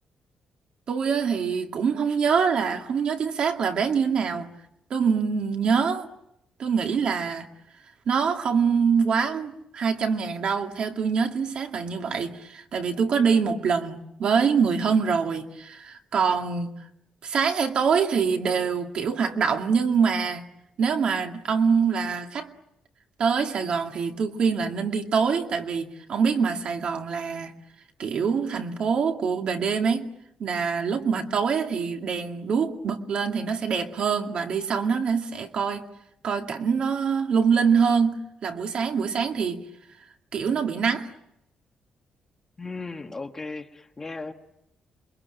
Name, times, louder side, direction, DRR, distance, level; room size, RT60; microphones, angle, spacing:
voice 1, 0.9-4.5 4.9-6.1 6.6-7.5 8.1-16.7 17.2-20.5 20.8-22.5 23.2-27.5 28.0-30.1 30.4-35.9 36.2-39.6 40.3-41.1, right 6 dB, 50° right, 2.3 m, -24 dB
voice 2, 42.6-44.3, left 3 dB, 20° left, 1.3 m, -36 dB
28.0 x 23.5 x 9.0 m
cardioid pair, 180°, 2 cm